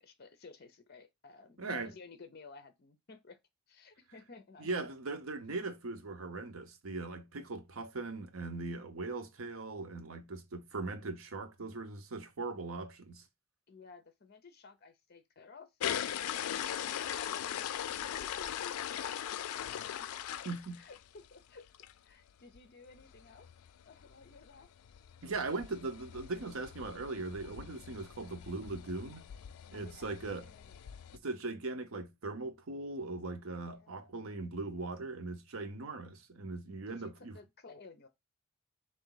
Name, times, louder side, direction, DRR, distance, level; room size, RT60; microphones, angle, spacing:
voice 1, 0.0-3.4 3.7-4.9 13.7-17.4 17.9-20.1 20.8-21.7 22.0-23.5 23.8-24.7 29.7-30.8 33.7-34.1 36.9-38.1, left 4 dB, 45° left, 0.6 m, -55 dB
voice 2, 1.6-1.9 4.6-13.2 20.4-20.8 25.2-29.2 29.7-30.5 31.2-37.4, right 3 dB, 70° right, 0.7 m, -40 dB
sound 1, 15.8-21.3 21.7-21.9 22.3-22.4 22.5-22.6 22.9-31.2, left 10 dB, 90° left, 0.3 m, -40 dB
3.8 x 2.7 x 3.8 m
head